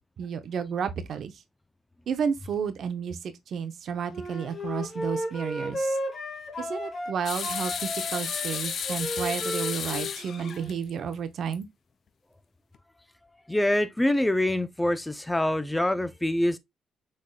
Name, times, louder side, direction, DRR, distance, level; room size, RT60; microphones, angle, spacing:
voice 1, 0.2-1.3 2.1-6.0 6.6-11.7, right 7 dB, 60° right, 0.7 m, -32 dB
Wind instrument woodwind instrument, 4.1-7.1 7.4-10.7, equal, 40° left, 1.8 m, -34 dB
sound 1, 7.2-11.1 11.5-11.6 12.7-12.8, left 7 dB, 60° left, 0.5 m, -33 dB
voice 2, 13.5-16.6, left 1 dB, 10° left, 0.5 m, -25 dB
6.5 x 3.6 x 2.2 m
cardioid pair, 90°, 0 cm